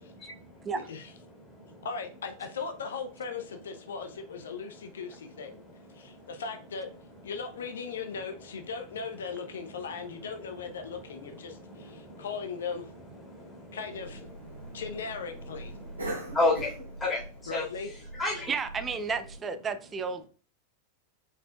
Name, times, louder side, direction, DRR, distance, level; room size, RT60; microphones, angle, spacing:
voice 1, 0.2-0.7 1.4-1.9 5.5-6.3 9.7-9.8 10.8-12.3 13.0-13.8 14.3-14.8 15.5-17.7 18.1-18.6, left 2 dB, 15° left, -4 dB, 2.0 m, -34 dB
voice 2, 0.7-1.1 1.8-5.6 5.9-6.9 7.2-12.9 13.7-14.2 14.7-15.7 17.5-17.9, left 5 dB, 65° left, 7 dB, 0.6 m, -38 dB
Cough, 13.9-19.4, right 1 dB, 75° right, 1.9 m, -42 dB
voice 3, 18.5-20.2, right 5 dB, 20° right, 9 dB, 0.5 m, -32 dB
5.1 x 4.3 x 2.3 m, 0.38 s
figure-of-eight pair, 90°, 0 cm